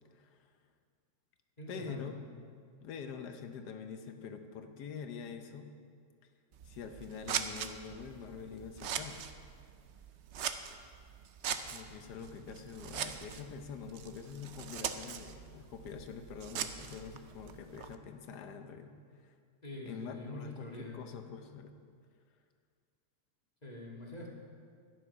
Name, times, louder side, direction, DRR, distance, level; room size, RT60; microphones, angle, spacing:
voice 1, 0.1-0.4 1.7-2.2 2.8-5.7 6.6-9.2 11.5-19.3 19.8-21.7, left 6 dB, 75° left, 7 dB, 1.4 m, -45 dB
voice 2, 1.6-2.2 19.6-21.0 23.6-24.3, left 2 dB, 25° left, -2 dB, 1.8 m, -44 dB
Scissors, 6.5-18.0, right 8 dB, 65° right, 0.7 m, -42 dB
12.5 x 10.0 x 5.5 m, 2.1 s
omnidirectional pair, 1.8 m